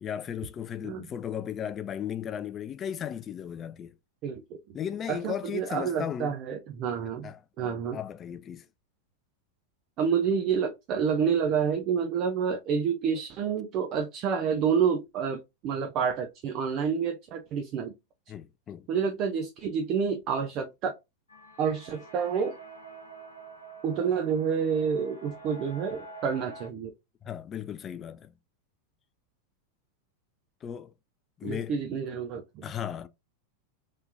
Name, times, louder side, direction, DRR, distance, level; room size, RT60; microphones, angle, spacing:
voice 1, 0.0-3.9 4.7-6.4 7.2-8.7 18.3-18.9 27.2-28.3 30.6-30.9 31.4-32.0 32.6-33.1, left 9 dB, 25° left, 0.3 m, -36 dB
voice 2, 4.2-4.8 5.1-7.3 7.6-8.0 10.0-17.9 18.9-20.9 21.6-22.5 23.8-26.9 31.4-32.7, right 6 dB, 40° right, 0.5 m, -28 dB
sound 1, 21.3-26.7, right 3 dB, 75° left, 1.0 m, -46 dB
3.2 x 3.2 x 2.5 m
figure-of-eight pair, 90°, 0 cm